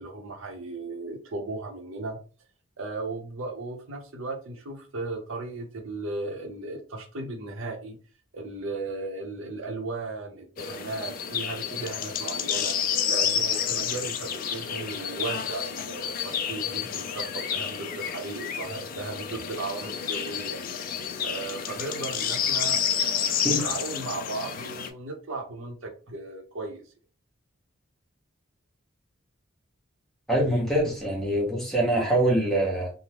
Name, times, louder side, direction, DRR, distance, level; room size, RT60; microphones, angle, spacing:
voice 1, 0.0-2.2 2.8-8.0 8.3-12.8 13.1-20.6 21.2-26.8, right 3 dB, 75° right, 2 dB, 0.7 m, -36 dB
sound 1, 10.6-24.9, left 8 dB, 45° left, 0.3 m, -30 dB
voice 2, 30.3-32.9, right 1 dB, ahead, -2 dB, 0.9 m, -24 dB
3.4 x 2.1 x 2.9 m, 0.38 s
head